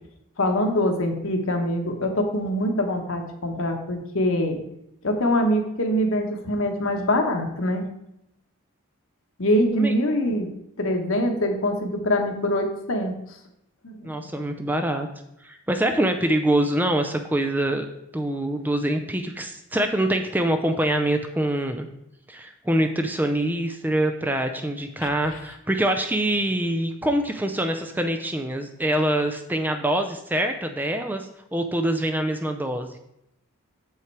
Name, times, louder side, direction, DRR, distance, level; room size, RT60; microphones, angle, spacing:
voice 1, 0.4-4.6 5.0-7.8 9.4-10.5 10.8-13.1 13.8-14.1 25.0-25.1, left 1 dB, 65° left, 4 dB, 1.2 m, -24 dB
voice 2, 14.0-15.1 15.4-17.9 18.1-21.9 22.3-32.9, right 1 dB, 10° right, 6 dB, 0.4 m, -25 dB
7.4 x 5.7 x 4.6 m, 0.82 s
head